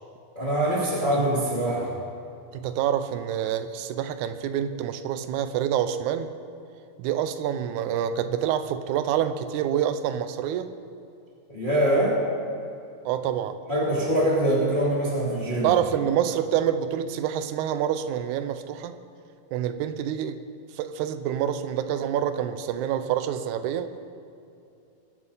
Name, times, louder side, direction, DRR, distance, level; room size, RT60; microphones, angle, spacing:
voice 1, 0.3-1.9 11.5-12.2 13.7-15.7, right 1 dB, 15° left, -6 dB, 2.3 m, -23 dB
voice 2, 2.5-6.3 7.0-10.7 13.1-13.6 15.6-19.0 19.5-20.4 20.8-24.0, right 10 dB, 80° right, 10 dB, 2.1 m, -27 dB
23.5 x 8.5 x 5.5 m, 2.6 s
omnidirectional pair, 3.6 m